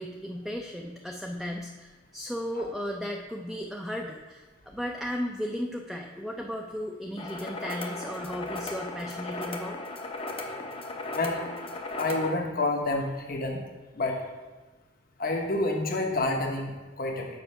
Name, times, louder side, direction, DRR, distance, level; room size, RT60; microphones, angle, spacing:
voice 1, 0.0-9.8, equal, ahead, 0 dB, 0.5 m, -35 dB
sound 1, 7.2-12.3, left 2 dB, 30° left, 0.7 m, -36 dB
voice 2, 11.1-11.4 11.9-13.6 13.9-14.2 15.2-17.3, left 2 dB, 50° left, 2 dB, 1.1 m, -28 dB
6.9 x 5.4 x 5.5 m, 1.2 s
head